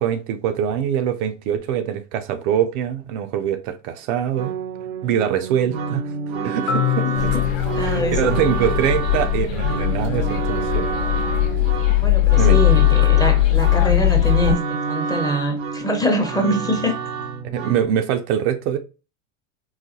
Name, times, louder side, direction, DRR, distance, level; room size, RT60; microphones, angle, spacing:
voice 1, 0.0-4.5 5.0-6.1 6.4-7.4 7.9-10.9 12.4-12.6 17.5-18.8, right 9 dB, 60° right, 0.5 m, -23 dB
sound 1, 4.4-17.8, right 6 dB, 90° right, 0.8 m, -29 dB
Marimba xylophone, 6.7-10.6, left 12 dB, 85° left, 0.6 m, -28 dB
sound 2, 7.1-14.5, left 14 dB, 55° left, 0.9 m, -19 dB
voice 2, 7.7-8.3 12.0-17.0, equal, 10° left, 0.7 m, -24 dB
3.9 x 2.1 x 2.8 m
supercardioid pair, 110°, 39 cm